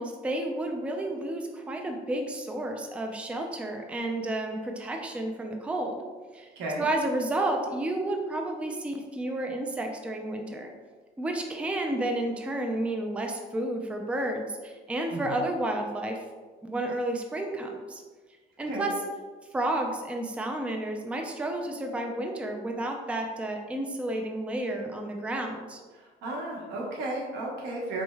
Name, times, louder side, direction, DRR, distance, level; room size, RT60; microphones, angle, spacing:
voice 1, 0.0-6.0 6.3-6.5 6.8-10.7 11.2-16.2 16.6-18.0 18.6-18.9 19.5-25.8, right 1 dB, 5° right, 3 dB, 0.4 m, -31 dB
voice 2, 6.6-6.9 15.1-15.4 18.7-18.9 25.9-28.0, right 2 dB, 85° right, -2 dB, 1.0 m, -34 dB
4.2 x 3.1 x 2.2 m, 1.4 s
cardioid pair, 110°, 17 cm